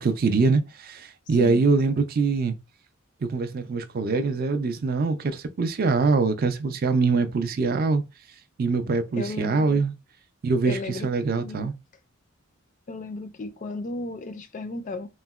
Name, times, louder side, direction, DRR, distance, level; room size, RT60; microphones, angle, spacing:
voice 1, 0.0-2.5 3.2-8.0 8.6-9.9 10.4-11.7, right 4 dB, 45° right, 0.4 m, -23 dB
voice 2, 9.1-9.8 10.6-11.7 12.9-15.1, left 3 dB, 35° left, 0.4 m, -34 dB
3.7 x 2.1 x 2.3 m
head